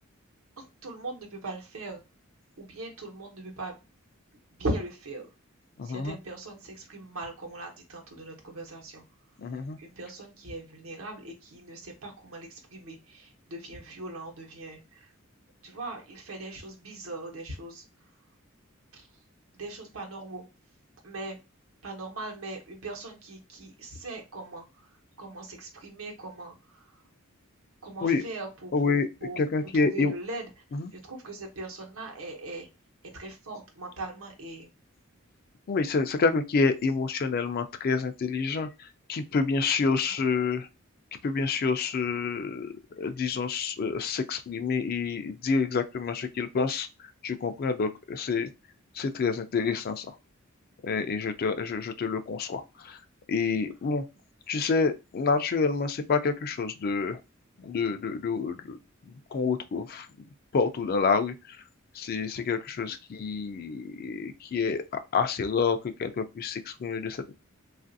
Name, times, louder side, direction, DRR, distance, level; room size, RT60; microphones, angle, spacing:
voice 1, 0.6-2.0 2.6-3.8 4.6-5.3 5.8-9.0 9.5-15.1 15.6-18.1 18.9-19.1 19.5-20.5 21.0-21.4 21.8-27.0 27.8-30.5 30.9-32.7 33.1-34.7 39.8-40.2 62.8-62.9, right 2 dB, 85° right, 2 dB, 0.9 m, -40 dB
voice 2, 5.8-6.2 9.4-9.8 28.0-28.2 28.7-29.1 29.4-30.1 30.7-30.9 35.7-40.7 41.2-48.5 48.9-50.2 50.8-53.0 53.3-54.1 54.5-57.2 57.6-58.8 59.0-61.6 61.9-67.3, left 4 dB, 45° left, 8 dB, 0.4 m, -28 dB
3.2 x 2.4 x 2.5 m, 0.27 s
head